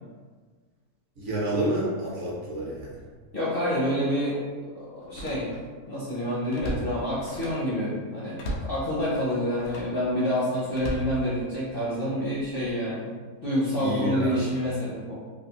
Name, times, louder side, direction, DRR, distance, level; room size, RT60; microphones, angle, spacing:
voice 1, 1.2-3.0 13.8-14.4, right 1 dB, 55° right, -6 dB, 1.0 m, -29 dB
Slam, 2.9-3.1 3.6-3.7 5.0-5.8 6.2-7.7 8.4-8.8 9.5-10.0 10.7-11.8 12.4-12.7, equal, 90° left, 1.1 m, -36 dB
voice 2, 3.3-4.4 4.7-5.5 5.9-13.1 13.4-15.2, equal, 50° left, -8 dB, 0.7 m, -28 dB
3.3 x 2.4 x 2.7 m, 1.5 s
omnidirectional pair, 1.6 m